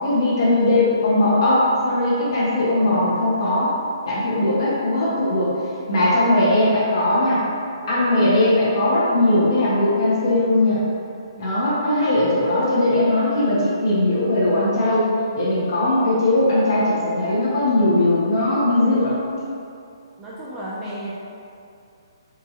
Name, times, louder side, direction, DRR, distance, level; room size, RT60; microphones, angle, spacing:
voice 1, 0.0-3.7 4.1-5.6 5.9-7.4 7.9-10.8 11.4-19.3, left 1 dB, 55° left, -8 dB, 1.5 m, -19 dB
voice 2, 20.2-21.1, right 1 dB, 15° right, -7 dB, 0.5 m, -33 dB
4.5 x 2.8 x 2.9 m, 2.5 s
hypercardioid pair, 160°, 3 cm